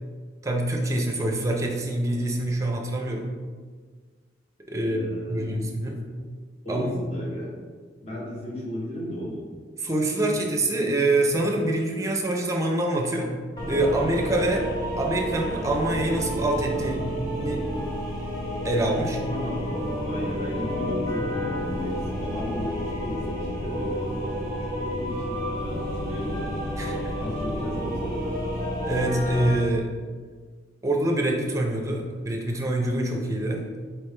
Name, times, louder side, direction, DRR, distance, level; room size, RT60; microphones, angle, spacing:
voice 1, 0.4-3.3 4.7-5.0 5.3-6.0 6.7-7.0 9.8-13.3 13.7-14.6 15.0-17.0 17.4-17.6 18.6-19.2 26.8-27.1 28.8-29.9 30.8-33.6, right 1 dB, 15° right, 0 dB, 0.6 m, -25 dB
voice 2, 4.8-5.5 6.6-7.5 8.0-9.5 19.3-19.6 20.0-22.8 23.0-28.2, equal, 35° left, -5 dB, 1.3 m, -34 dB
sound 1, 13.6-29.6, equal, 20° left, 1.0 m, -30 dB
4.5 x 3.4 x 3.2 m, 1.6 s
head